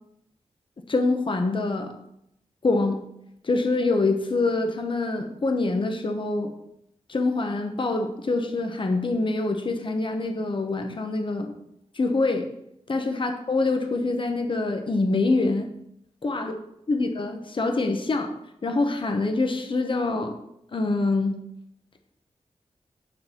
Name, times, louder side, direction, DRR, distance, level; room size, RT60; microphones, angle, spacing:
voice 1, 0.9-1.9 2.6-3.0 3.4-6.5 7.1-11.5 12.0-12.4 12.9-15.7 16.2-16.5 16.9-18.3 18.6-20.4 20.7-21.4, left 3 dB, 45° left, 5 dB, 1.1 m, -25 dB
8.6 x 4.1 x 6.8 m, 0.78 s
wide cardioid pair, 90°, 12 cm